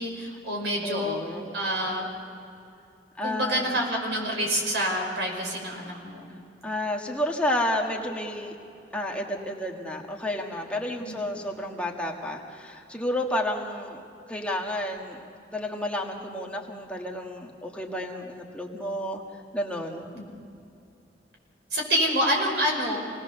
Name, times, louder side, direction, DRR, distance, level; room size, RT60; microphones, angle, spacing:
voice 1, 0.0-1.2 1.5-2.1 3.2-6.3 11.0-11.3 20.1-20.2 21.7-23.0, equal, 80° right, 0 dB, 5.4 m, -27 dB
voice 2, 0.8-1.5 3.2-3.8 6.6-8.5 8.9-14.0 14.3-15.2 15.5-19.2 19.5-20.1, left 1 dB, 5° left, -1 dB, 1.8 m, -31 dB
26.5 x 19.5 x 6.9 m, 2.6 s
head